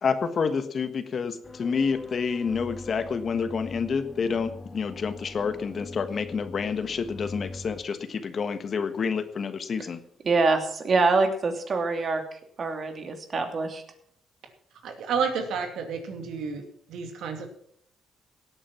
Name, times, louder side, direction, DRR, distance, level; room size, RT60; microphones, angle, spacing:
voice 1, 0.0-10.0, left 5 dB, 50° left, 10 dB, 1.4 m, -28 dB
sound 1, 1.4-7.8, left 3 dB, 20° left, 1.8 m, -42 dB
voice 2, 10.2-12.2 12.6-13.8, right 3 dB, 45° right, 5 dB, 2.6 m, -24 dB
voice 3, 14.8-16.6 16.9-17.5, right 6 dB, 80° right, 5 dB, 2.5 m, -30 dB
17.0 x 8.8 x 6.0 m, 0.67 s
cardioid pair, 90°, 0 cm